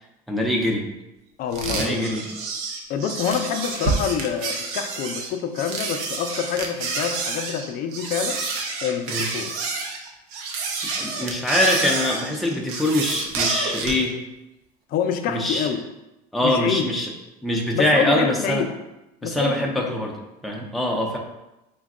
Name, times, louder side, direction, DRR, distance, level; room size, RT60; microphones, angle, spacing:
voice 1, 0.3-0.8 1.7-2.3 9.1-9.3 11.0-14.1 15.3-15.7 16.3-17.1 17.4-18.7 19.2-20.1 20.4-21.2, left 1 dB, ahead, -1 dB, 0.5 m, -23 dB
voice 2, 1.4-2.0 2.9-8.4 8.8-9.6 14.9-15.8 16.4-16.9 17.7-18.7 19.2-20.0, left 7 dB, 50° left, 6 dB, 0.5 m, -27 dB
sound 1, 1.5-14.0, right 4 dB, 80° right, 0.7 m, -28 dB
3.9 x 2.2 x 3.6 m, 0.97 s
supercardioid pair, 110°, 18 cm